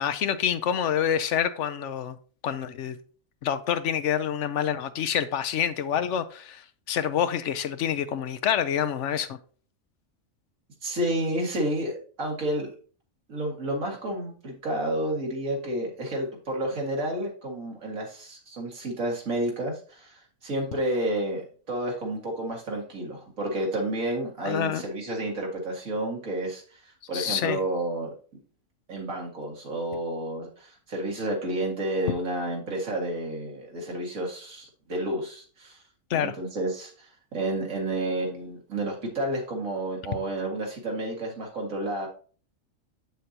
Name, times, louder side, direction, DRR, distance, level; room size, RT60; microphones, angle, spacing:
voice 1, 0.0-2.2 2.4-3.0 3.4-9.4 24.5-24.8 27.1-27.6 36.1-36.3, left 9 dB, 70° left, 0.9 m, -27 dB
voice 2, 10.8-12.7 13.3-28.1 28.9-35.8 36.1-42.1, right 1 dB, 85° right, 2.4 m, -30 dB
7.8 x 6.7 x 2.8 m
omnidirectional pair, 1.4 m